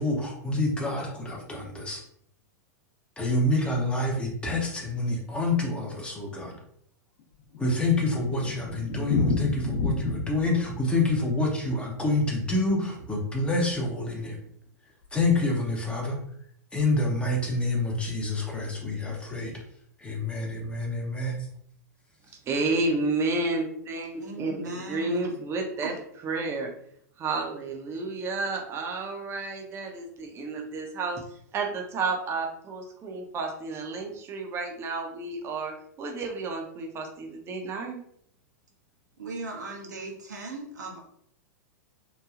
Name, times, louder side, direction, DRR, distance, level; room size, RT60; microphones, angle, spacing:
voice 1, 0.0-2.0 3.2-6.5 7.6-14.4 15.1-16.2 16.7-19.5 20.0-21.5, left 2 dB, 10° left, 0 dB, 0.7 m, -27 dB
Thunder, 7.2-13.5 13.7-13.8 14.1-14.2 14.5-14.6 15.1-15.4, left 3 dB, 55° left, 0.9 m, -32 dB
voice 2, 22.5-24.6 24.9-25.9 26.2-26.7 27.2-31.2 31.5-38.0, right 3 dB, 30° right, 2 dB, 0.6 m, -31 dB
voice 3, 24.2-25.4 25.8-25.9 39.2-41.1, right 2 dB, 85° right, -1 dB, 0.9 m, -38 dB
3.1 x 2.2 x 2.4 m, 0.68 s
hypercardioid pair, 105°, 9 cm